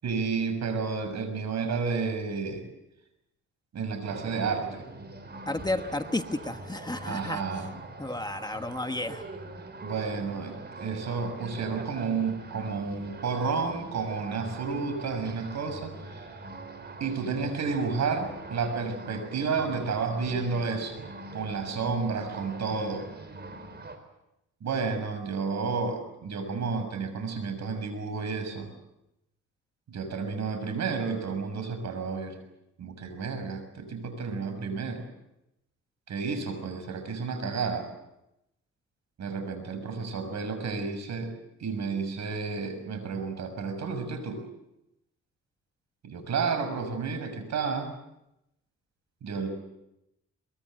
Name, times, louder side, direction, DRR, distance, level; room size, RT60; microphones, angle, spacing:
voice 1, 0.0-2.6 3.7-4.8 7.0-7.7 9.8-16.3 17.0-21.0 21.3-23.1 24.6-28.7 29.9-32.4 32.8-35.1 36.1-37.9 39.2-41.3 41.6-44.4 46.0-47.9 49.2-49.5, right 5 dB, 65° right, 8 dB, 6.3 m, -31 dB
sound 1, 4.1-24.0, right 2 dB, 35° right, 4.2 m, -43 dB
voice 2, 5.5-7.4 8.0-9.2, left 2 dB, 15° left, 8 dB, 1.3 m, -32 dB
23.0 x 22.5 x 7.8 m, 0.88 s
cardioid pair, 90°, 30 cm